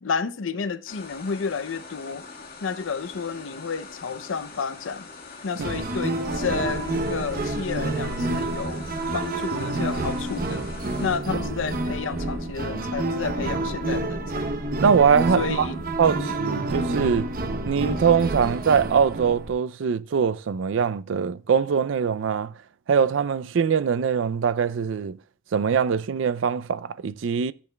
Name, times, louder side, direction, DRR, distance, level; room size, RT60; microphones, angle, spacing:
voice 1, 0.0-2.3 2.6-5.1 5.4-10.7 11.0-14.6 15.4-15.8 16.1-16.3, left 5 dB, 80° left, 0.5 m, -31 dB
sound 1, 0.9-11.2, left 4 dB, 50° left, 1.6 m, -43 dB
sound 2, 5.6-19.5, right 2 dB, 45° right, 0.8 m, -28 dB
voice 2, 14.8-15.7 16.0-17.3 17.7-22.5 22.9-25.2 25.5-27.5, right 6 dB, 70° right, 0.4 m, -22 dB
13.5 x 7.8 x 2.2 m
head